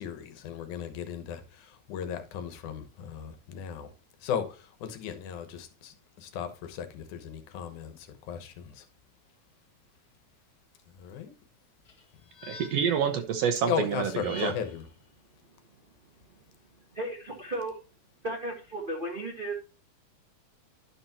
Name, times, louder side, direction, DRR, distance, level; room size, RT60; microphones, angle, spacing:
voice 1, 0.0-3.9 4.2-8.0 8.3-8.8 11.0-11.3 13.7-14.9, left 8 dB, 80° left, 2.6 m, -36 dB
sound 1, 11.8-13.1 14.0-14.9, left 3 dB, 45° left, 1.4 m, -47 dB
voice 2, 12.5-14.5, right 7 dB, 70° right, 1.7 m, -28 dB
voice 3, 16.9-17.8 18.2-19.6, right 1 dB, 45° right, 0.6 m, -34 dB
11.5 x 5.8 x 2.9 m
omnidirectional pair, 3.4 m